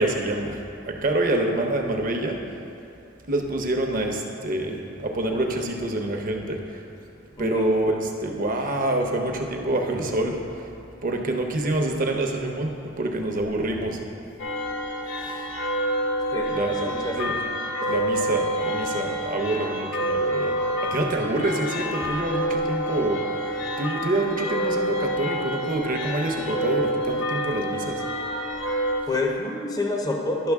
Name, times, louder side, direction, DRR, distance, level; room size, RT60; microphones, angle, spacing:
voice 1, 0.0-2.6 3.3-6.9 7.4-10.7 11.0-14.0 15.2-15.4 16.5-17.4 17.9-28.0, right 1 dB, 45° right, 3 dB, 0.8 m, -27 dB
voice 2, 7.4-7.7 16.3-17.2 29.1-30.5, left 2 dB, 20° left, 1 dB, 0.6 m, -27 dB
sound 1, 14.4-29.0, equal, 65° left, 0.8 m, -28 dB
11.0 x 6.0 x 3.5 m, 2.6 s
head